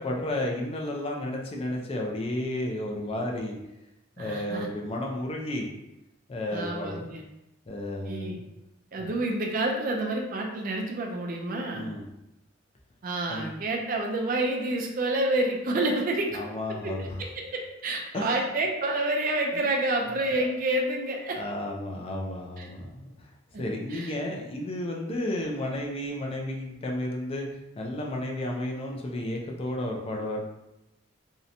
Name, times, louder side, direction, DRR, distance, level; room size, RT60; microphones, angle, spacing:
voice 1, 0.0-3.6 4.2-5.7 6.3-7.0 7.7-8.4 9.0-9.1 11.7-12.1 13.3-13.6 16.3-17.2 18.1-18.4 19.5-19.7 20.4-20.5 21.3-23.3 23.6-27.5 27.8-30.4, left 1 dB, 30° left, 0 dB, 0.4 m, -32 dB
voice 2, 4.2-4.7 6.5-7.2 8.0-8.4 8.9-11.9 13.0-16.4 16.7-21.4 22.6-22.7 23.5-24.1, right 2 dB, 45° right, 1 dB, 0.3 m, -29 dB
2.7 x 2.1 x 2.5 m, 0.90 s
head